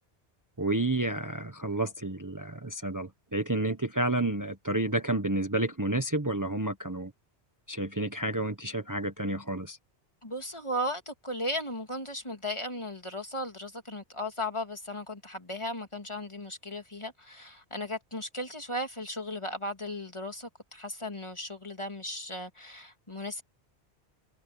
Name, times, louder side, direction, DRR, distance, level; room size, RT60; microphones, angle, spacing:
voice 1, 0.6-7.1 7.7-9.8, right 1 dB, 15° right, 1.3 m, -30 dB
voice 2, 10.2-23.4, left 1 dB, 25° left, 2.4 m, -36 dB
omnidirectional pair, 1.1 m